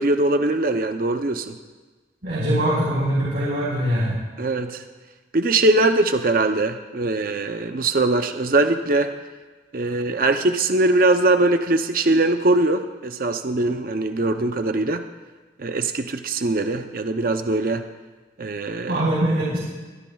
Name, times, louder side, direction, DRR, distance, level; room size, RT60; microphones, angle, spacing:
voice 1, 0.0-1.6 4.4-4.8 5.3-9.1 9.7-15.0 15.6-17.8 18.4-19.0, right 2 dB, 50° right, 7 dB, 0.6 m, -21 dB
voice 2, 2.2-4.1 18.9-19.6, right 1 dB, 85° right, -8 dB, 4.5 m, -22 dB
22.5 x 13.5 x 2.3 m, 1.3 s
head